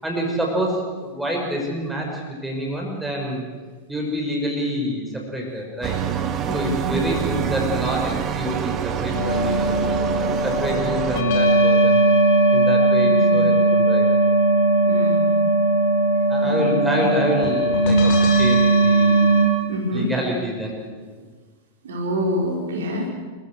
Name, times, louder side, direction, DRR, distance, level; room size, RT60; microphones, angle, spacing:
voice 1, 0.0-3.4 3.9-6.0 6.5-9.8 10.4-12.0 12.5-14.1 16.3-19.3 19.9-20.7, equal, 5° right, 0 dB, 6.3 m, -27 dB
sound 1, 5.8-11.2, right 8 dB, 30° right, 1.7 m, -26 dB
voice 2, 6.4-7.0 13.0-13.5 14.9-15.4 16.4-17.1 19.7-20.1 21.8-23.1, left 1 dB, 60° right, 0 dB, 4.6 m, -27 dB
sound 2, 9.1-19.5, right 1 dB, 50° left, 4.9 m, -18 dB
28.0 x 15.0 x 8.1 m, 1.4 s
figure-of-eight pair, 90°, 0 cm